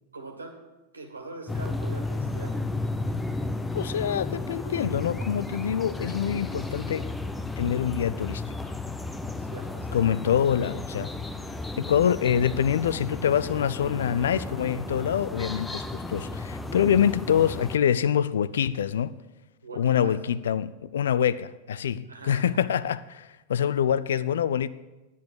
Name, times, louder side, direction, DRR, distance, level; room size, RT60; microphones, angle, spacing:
voice 1, 0.1-0.6 0.9-2.6 9.4-10.0 19.6-20.2 22.1-22.5, right 3 dB, 80° right, 1.8 m, -42 dB
sound 1, 1.5-17.8, left 2 dB, 10° left, 0.7 m, -33 dB
voice 2, 3.7-7.1 7.6-8.4 9.9-11.1 11.8-19.2 19.7-24.7, left 9 dB, 60° left, 0.4 m, -25 dB
10.5 x 8.2 x 6.6 m
figure-of-eight pair, 90°, 0 cm